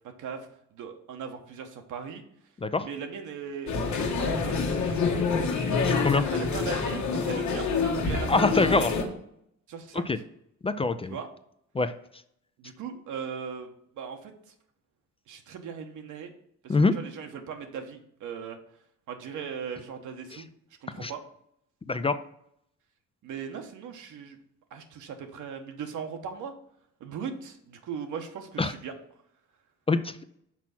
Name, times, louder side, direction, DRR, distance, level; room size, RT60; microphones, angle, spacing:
voice 1, 0.2-2.2 2.8-4.6 4.9-5.6 6.1-7.7 8.0-8.3 8.6-8.7 9.7-10.0 11.1-11.3 12.6-14.3 15.3-16.3 16.6-18.6 19.1-20.4 20.8-21.2 23.2-24.4 24.7-26.5 27.0-28.9, right 6 dB, 80° right, 5 dB, 1.2 m, -39 dB
sound 1, 3.7-9.0, left 4 dB, 70° left, 1.3 m, -27 dB
voice 2, 5.8-6.2 8.3-8.9 9.9-10.2 10.6-11.2 11.7-11.9 16.7-17.0 20.3-20.4 21.0-21.1 21.9-22.2 28.6-28.7 29.9-30.2, left 3 dB, 20° left, 11 dB, 0.4 m, -24 dB
6.0 x 4.5 x 5.9 m, 0.73 s
cardioid pair, 90°, 30 cm